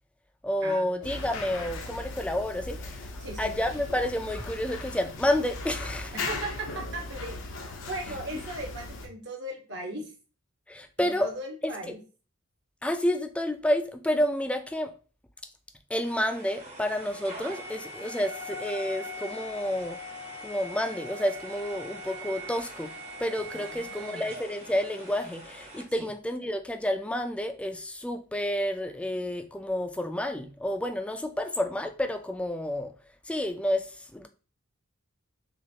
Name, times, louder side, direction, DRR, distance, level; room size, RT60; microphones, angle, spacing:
voice 1, 0.4-3.1 3.4-6.1 10.7-11.3 11.6-11.7 12.8-14.9 15.9-20.0 20.4-22.9 23.2-32.9 33.3-34.3, left 1 dB, 5° left, 0.4 m, -30 dB
sound 1, 1.0-9.1, left 3 dB, 80° left, 0.8 m, -38 dB
voice 2, 3.2-3.5 6.1-10.1 11.0-12.0 23.5-24.2 26.0-26.1, right 1 dB, 60° right, 1.3 m, -38 dB
sound 2, 16.0-25.8, equal, 35° right, 0.9 m, -41 dB
6.0 x 2.5 x 2.8 m
head